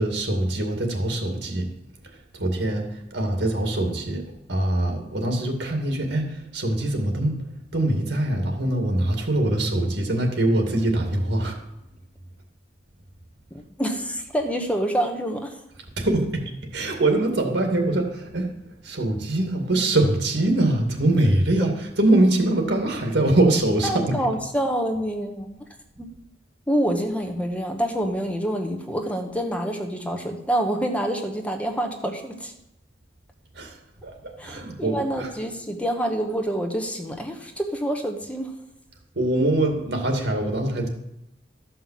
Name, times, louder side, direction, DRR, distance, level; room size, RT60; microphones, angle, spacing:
voice 1, 0.0-1.7 2.4-2.8 3.1-4.2 4.5-7.4 7.7-11.5 16.0-16.4 16.7-18.5 18.8-21.7 22.0-24.1 33.6-33.7 34.0-35.3 39.2-40.9, right 1 dB, 70° right, 3 dB, 2.3 m, -23 dB
voice 2, 13.5-15.5 23.8-25.6 26.0-26.1 26.7-32.5 34.4-38.5, right 1 dB, 5° left, 4 dB, 1.0 m, -27 dB
13.0 x 5.7 x 7.5 m, 0.86 s
head